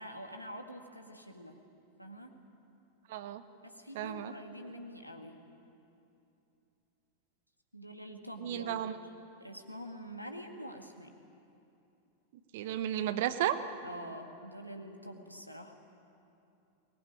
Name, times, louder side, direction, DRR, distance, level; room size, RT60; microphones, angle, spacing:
voice 1, 0.0-1.6 2.0-2.4 3.6-5.4 7.7-8.9 9.4-11.1 13.8-15.7, equal, 90° left, 4 dB, 1.9 m, -46 dB
voice 2, 3.1-3.4 3.9-4.3 8.4-9.0 12.5-13.6, right 11 dB, 55° right, 12 dB, 1.1 m, -33 dB
23.0 x 19.5 x 9.4 m, 2.7 s
figure-of-eight pair, 90°, 0 cm